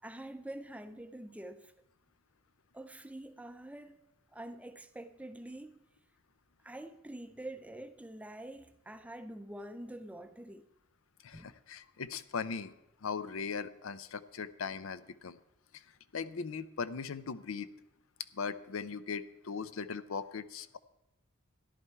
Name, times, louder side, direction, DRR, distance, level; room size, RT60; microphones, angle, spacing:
voice 1, 0.0-1.7 2.7-4.0 4.3-5.8 6.6-10.7 11.3-11.6, right 1 dB, 5° right, 0.5 m, -46 dB
voice 2, 11.2-12.7 13.0-15.4 15.7-15.8 16.1-17.7 18.3-20.8, left 5 dB, 75° left, 0.6 m, -39 dB
14.0 x 11.0 x 4.6 m
head